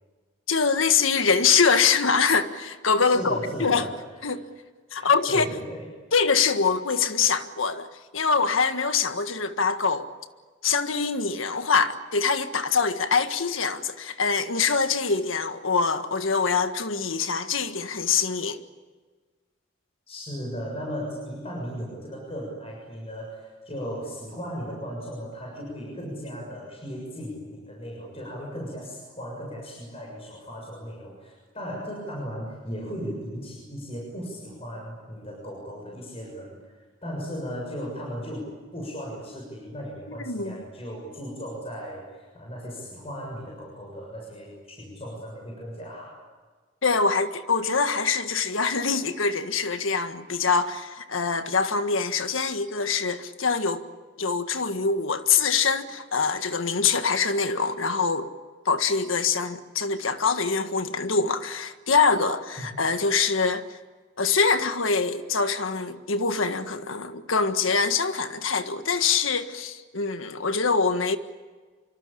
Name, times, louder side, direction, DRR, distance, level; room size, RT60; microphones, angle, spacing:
voice 1, 0.5-3.9 4.2-4.4 4.9-5.5 6.1-7.9 8.1-10.1 10.6-18.6 40.1-40.6 46.8-53.8 54.2-58.3 58.6-63.8 64.2-71.2, left 5 dB, 85° left, 1.7 m, -24 dB
voice 2, 3.0-4.4 4.9-5.9 20.1-46.2 62.6-62.8, equal, 30° left, 6.9 m, -36 dB
26.5 x 25.0 x 8.6 m
head